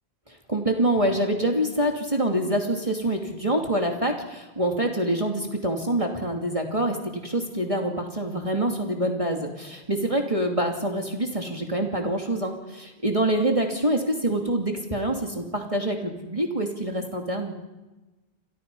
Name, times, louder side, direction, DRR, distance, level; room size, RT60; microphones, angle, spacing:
voice 1, 0.3-17.5, right 1 dB, 30° right, 1 dB, 2.8 m, -26 dB
29.5 x 27.0 x 5.6 m, 1.1 s
omnidirectional pair, 1.1 m